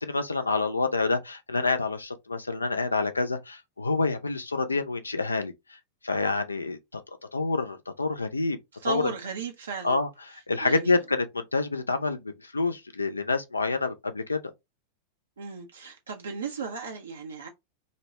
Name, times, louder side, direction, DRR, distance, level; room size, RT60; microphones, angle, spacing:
voice 1, 0.0-5.5 6.0-7.0 7.3-8.6 8.9-9.1 9.8-14.4, left 3 dB, 85° left, 0.4 m, -27 dB
voice 2, 8.8-10.0 10.6-11.0 15.4-17.5, right 4 dB, 75° right, 0.5 m, -35 dB
2.7 x 2.2 x 2.9 m
figure-of-eight pair, 90°, 0 cm